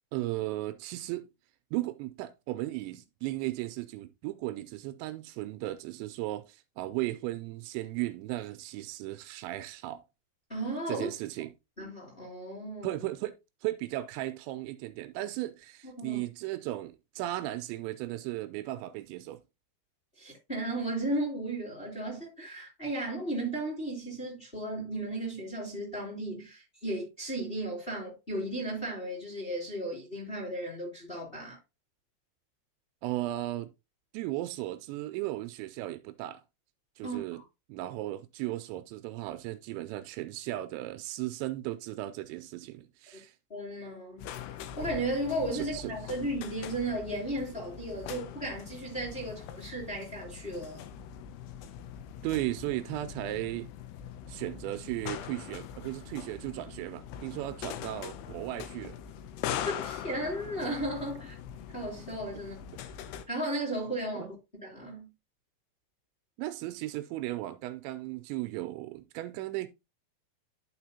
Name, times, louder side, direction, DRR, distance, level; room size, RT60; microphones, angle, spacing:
voice 1, 0.1-1.3 1.7-10.0 10.9-11.5 12.8-13.3 13.6-19.4 33.0-33.7 34.1-36.4 37.0-37.4 37.7-43.4 45.5-45.9 52.2-53.7 54.3-59.0 64.2-64.3 66.4-69.7, right 16 dB, 85° right, 2.7 m, -36 dB
voice 2, 10.5-11.1 11.8-13.0 15.8-16.2 20.2-31.6 37.0-37.4 43.5-44.3 44.8-50.8 59.5-61.3 61.7-62.6 63.3-64.4 64.6-65.1, right 1 dB, 15° left, 2.0 m, -35 dB
sound 1, 44.2-63.3, left 9 dB, 85° left, 2.5 m, -42 dB
12.0 x 4.3 x 2.8 m
omnidirectional pair, 5.3 m